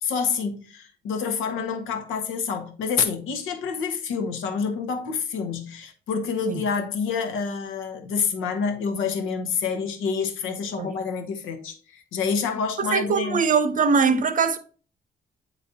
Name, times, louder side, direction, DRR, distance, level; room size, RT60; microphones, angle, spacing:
voice 1, 0.0-13.4, left 6 dB, 90° left, 0.9 m, -28 dB
voice 2, 12.8-14.6, right 5 dB, 40° right, 0.7 m, -21 dB
8.4 x 4.0 x 2.8 m
cardioid pair, 90°, 20 cm